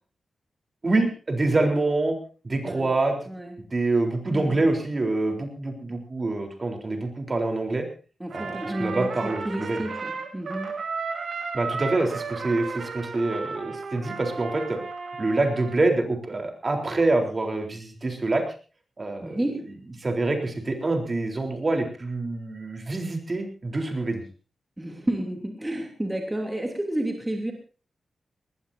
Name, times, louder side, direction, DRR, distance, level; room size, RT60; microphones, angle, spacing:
voice 1, 0.8-2.1 2.4-3.2 3.7-7.8 8.3-9.9 11.5-14.8 15.2-18.4 19.0-19.4 20.0-24.2, right 2 dB, 35° right, 3 dB, 3.9 m, -26 dB
voice 2, 3.3-3.7 4.3-4.7 8.2-10.7 19.2-19.8 24.8-27.5, right 1 dB, 10° right, 2 dB, 3.0 m, -31 dB
Trumpet, 8.3-15.9, right 4 dB, 70° right, 3.2 m, -34 dB
21.0 x 19.5 x 2.8 m, 0.37 s
wide cardioid pair, 115°, 0 cm